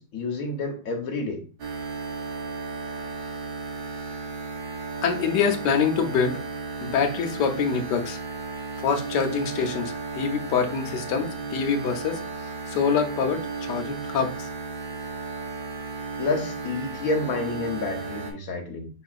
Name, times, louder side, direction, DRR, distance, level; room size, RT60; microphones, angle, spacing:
voice 1, 0.0-1.4 16.2-18.9, left 3 dB, 60° left, 3 dB, 1.3 m, -29 dB
sound 1, 1.6-18.3, right 4 dB, 65° right, 1.5 m, -34 dB
voice 2, 5.0-6.4 6.8-8.2 8.8-14.5, left 6 dB, 85° left, 5 dB, 1.4 m, -25 dB
5.3 x 3.8 x 2.4 m, 0.37 s
omnidirectional pair, 1.8 m